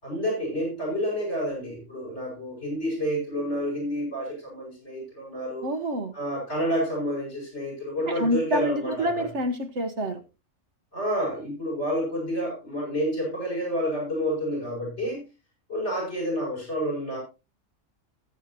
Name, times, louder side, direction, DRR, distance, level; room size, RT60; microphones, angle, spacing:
voice 1, 0.0-5.7 6.1-9.2 10.9-15.2 15.7-17.2, equal, 55° left, -2 dB, 6.9 m, -29 dB
voice 2, 5.6-6.1 8.1-10.2, equal, 60° right, 6 dB, 1.4 m, -27 dB
20.0 x 8.1 x 2.8 m, 0.29 s
omnidirectional pair, 1.4 m